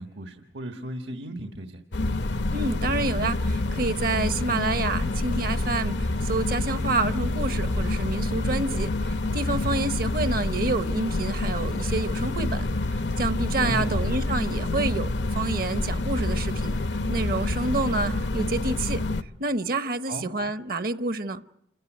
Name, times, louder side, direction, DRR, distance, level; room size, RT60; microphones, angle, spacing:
voice 1, 0.0-1.8 13.6-14.0 20.1-20.3, right 1 dB, 75° right, 1.5 m, -35 dB
sound 1, 1.9-19.2, left 2 dB, 75° left, 0.8 m, -27 dB
voice 2, 2.5-16.8 17.1-19.0 19.4-21.4, right 3 dB, 55° right, 0.9 m, -28 dB
28.5 x 15.0 x 9.2 m
head